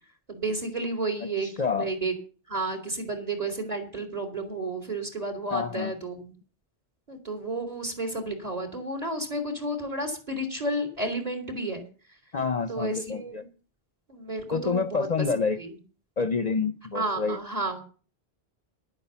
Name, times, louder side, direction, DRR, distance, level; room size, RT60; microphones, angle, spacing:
voice 1, 0.3-1.5 1.8-2.1 2.5-6.3 7.1-11.8 12.7-13.4 14.1-15.3 15.6-15.7 16.9-17.8, right 2 dB, 40° right, 5 dB, 3.8 m, -31 dB
voice 2, 1.2-1.9 5.5-5.9 12.3-13.4 14.5-15.6 16.2-17.4, left 5 dB, 45° left, 10 dB, 0.8 m, -28 dB
11.5 x 8.8 x 7.1 m, 0.37 s
omnidirectional pair, 1.1 m